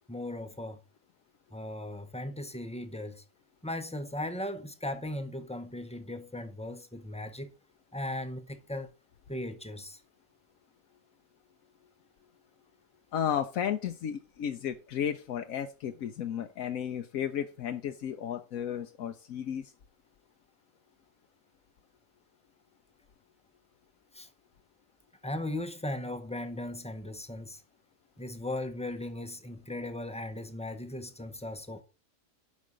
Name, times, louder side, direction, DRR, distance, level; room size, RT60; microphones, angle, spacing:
voice 1, 0.1-0.8 1.5-3.2 3.6-7.5 7.9-8.9 9.3-10.0 24.1-24.3 25.2-27.6 28.2-31.8, left 1 dB, 5° left, 0.6 m, -37 dB
voice 2, 13.1-19.7, left 9 dB, 85° left, 1.2 m, -33 dB
8.5 x 5.5 x 4.9 m
omnidirectional pair, 1.4 m